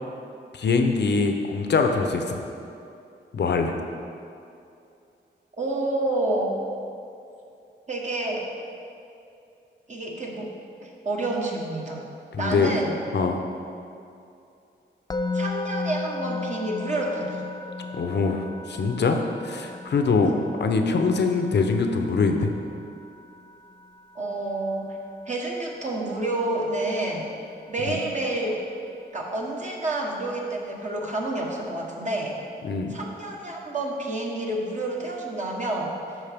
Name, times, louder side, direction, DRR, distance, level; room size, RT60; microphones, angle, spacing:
voice 1, 0.5-2.4 3.3-3.7 12.3-12.7 13.1-13.4 17.9-20.3 20.6-22.5 27.9-28.0 32.6-32.9, left 4 dB, 65° left, 5 dB, 0.8 m, -23 dB
voice 2, 5.6-6.5 7.9-8.5 9.9-10.5 10.8-12.1 12.4-13.0 15.3-17.5 20.2-20.5 24.1-25.0 25.3-27.3 27.7-28.6 29.1-32.4 32.9-35.9, right 2 dB, 40° right, -2 dB, 1.3 m, -29 dB
Musical instrument, 15.1-26.2, left 3 dB, 20° left, 0.3 m, -36 dB
12.5 x 4.6 x 3.5 m, 2.6 s
cardioid pair, 80°, 19 cm